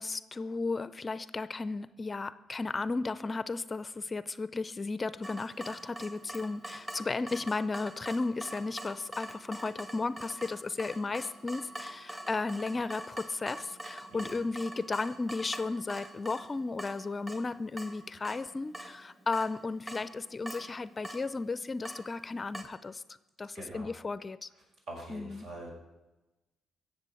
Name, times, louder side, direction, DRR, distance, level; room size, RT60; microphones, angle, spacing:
voice 1, 0.0-23.0 23.4-24.5 25.1-25.5, left 3 dB, 30° left, 0.5 m, -34 dB
Water tap faucet / Drip, 5.2-22.6, right 1 dB, 25° right, 2.0 m, -45 dB
voice 2, 23.5-23.9 24.9-25.7, right 1 dB, 70° right, 5.9 m, -44 dB
16.0 x 7.5 x 7.8 m
cardioid pair, 90°, 0 cm